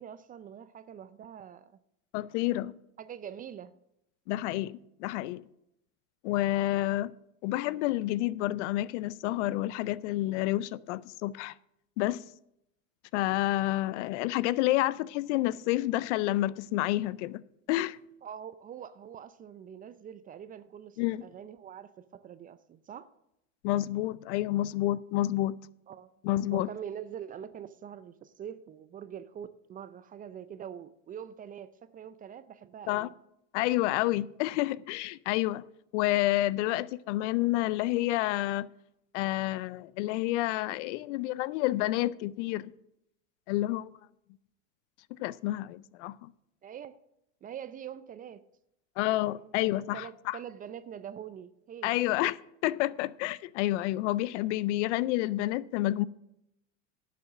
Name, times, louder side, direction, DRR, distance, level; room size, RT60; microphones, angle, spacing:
voice 1, 0.0-1.8 3.0-3.7 18.2-23.1 25.9-26.1 26.5-33.1 36.7-36.8 46.6-47.0 47.4-48.5 49.4-52.0, right 9 dB, 20° right, 0.4 m, -44 dB
voice 2, 2.1-2.7 4.3-5.4 6.2-7.1 7.4-11.5 12.0-12.2 13.1-17.4 17.7-18.0 21.0-21.2 23.6-25.5 26.2-26.7 32.9-33.1 33.5-35.6 35.9-38.7 39.1-42.7 43.5-43.9 45.2-46.3 49.0-50.4 51.8-56.0, left 16 dB, 60° left, 0.5 m, -29 dB
11.0 x 6.8 x 6.4 m
hypercardioid pair, 105°, 40 cm